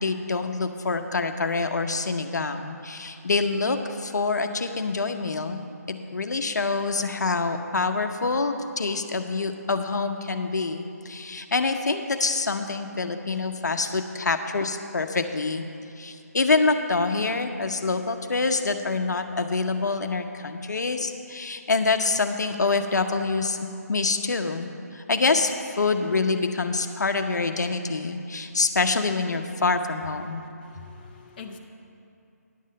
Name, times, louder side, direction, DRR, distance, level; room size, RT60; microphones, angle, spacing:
voice 1, 0.0-5.6 6.1-15.6 16.0-30.4, left 3 dB, 90° left, 6 dB, 0.8 m, -26 dB
voice 2, 30.2-31.6, left 5 dB, 30° left, 2 dB, 0.7 m, -44 dB
10.0 x 5.6 x 7.5 m, 2.7 s
hypercardioid pair, 165°, 9 cm